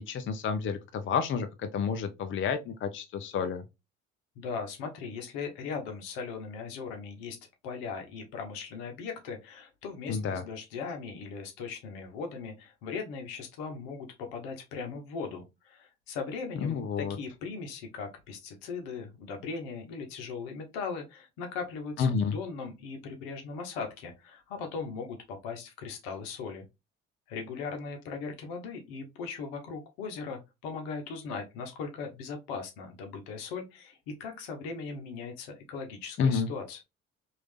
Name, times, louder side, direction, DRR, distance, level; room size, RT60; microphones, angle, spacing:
voice 1, 0.0-3.6 10.1-10.4 16.6-17.2 22.0-22.4 36.2-36.5, left 6 dB, 40° left, 0.6 m, -30 dB
voice 2, 4.4-7.4 7.6-26.6 27.3-36.8, left 5 dB, 80° left, 0.9 m, -39 dB
3.1 x 2.6 x 3.2 m
hypercardioid pair, 60°, 30 cm